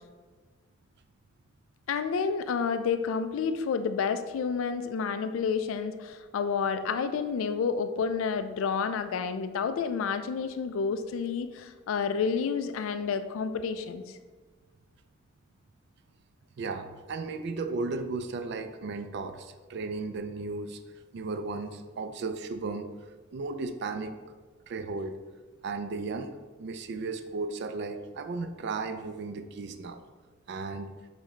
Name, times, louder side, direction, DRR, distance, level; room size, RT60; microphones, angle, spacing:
voice 1, 1.9-14.2, left 6 dB, 75° left, 10 dB, 0.3 m, -30 dB
voice 2, 16.6-20.8 21.1-22.9 23.3-24.2 24.7-25.2 25.6-30.0 30.5-30.9, right 3 dB, 55° right, 9 dB, 0.3 m, -35 dB
6.2 x 2.2 x 3.5 m, 1.4 s
head